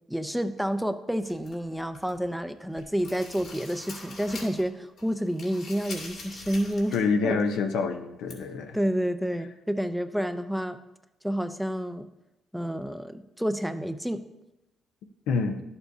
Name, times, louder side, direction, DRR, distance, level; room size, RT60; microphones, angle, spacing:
voice 1, 0.1-7.0 7.2-7.4 8.7-10.8 11.2-12.1 12.5-14.2, equal, ahead, 9 dB, 0.5 m, -29 dB
sound 1, 1.2-2.3 2.6-4.7 5.0-7.1 7.4-7.5 8.3-8.4, left 3 dB, 65° left, 2.2 m, -44 dB
voice 2, 6.9-8.8 15.3-15.6, left 4 dB, 85° left, 6 dB, 0.7 m, -27 dB
11.0 x 7.0 x 2.7 m, 0.91 s
cardioid pair, 90°, 0 cm